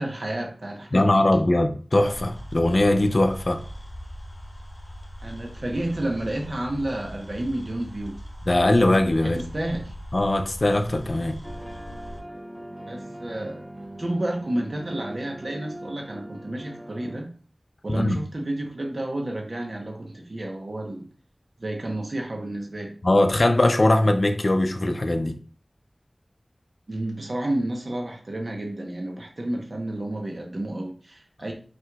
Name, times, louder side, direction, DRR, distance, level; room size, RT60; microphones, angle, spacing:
voice 1, 0.0-1.2 5.2-8.2 9.2-9.9 12.8-13.7 14.0-17.3 17.8-21.1 21.6-22.9 26.9-31.5, right 1 dB, 70° right, 0.9 m, -31 dB
voice 2, 0.9-3.6 8.5-9.4 10.1-11.4 17.9-18.2 23.0-25.4, left 1 dB, 60° left, 0.5 m, -21 dB
sound 1, 2.0-12.2, equal, 45° left, 1.3 m, -40 dB
sound 2, 11.4-17.2, right 1 dB, 25° right, 0.6 m, -40 dB
4.7 x 4.2 x 2.3 m
wide cardioid pair, 40°, 0 cm